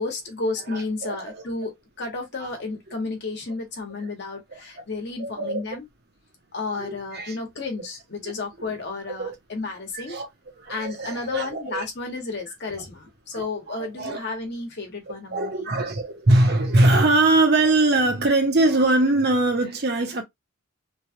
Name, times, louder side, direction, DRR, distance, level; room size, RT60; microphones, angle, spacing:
voice 1, 0.0-5.8 6.5-10.2 10.7-15.7, left 3 dB, 55° left, 1.2 m, -32 dB
voice 2, 0.7-1.4 2.4-2.5 4.5-4.8 5.2-5.6 6.8-7.4 8.2-8.3 9.2-9.3 9.9-10.3 10.6-11.8 12.8-12.9 13.3-14.2 15.3-20.2, right 2 dB, 50° right, 0.8 m, -22 dB
3.1 x 2.3 x 2.7 m
head